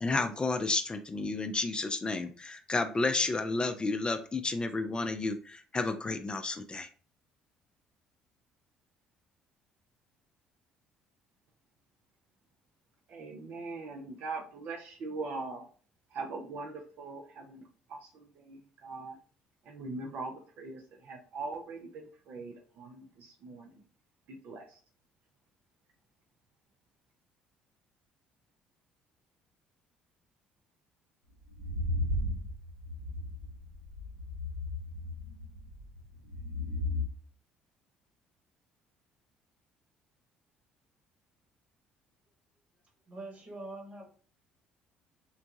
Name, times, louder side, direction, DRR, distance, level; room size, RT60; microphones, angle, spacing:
voice 1, 0.0-6.9, left 3 dB, 25° left, 7 dB, 0.4 m, -31 dB
voice 2, 13.1-15.6 16.1-17.6 17.9-19.2 19.7-23.7 24.4-24.6, right 3 dB, 60° right, 2 dB, 0.5 m, -41 dB
sound 1, 31.4-37.1, left 2 dB, 75° right, 1.1 m, -35 dB
voice 3, 43.1-44.0, right 2 dB, 40° right, 1 dB, 1.4 m, -43 dB
3.8 x 2.2 x 2.7 m, 0.42 s
hypercardioid pair, 55°, 4 cm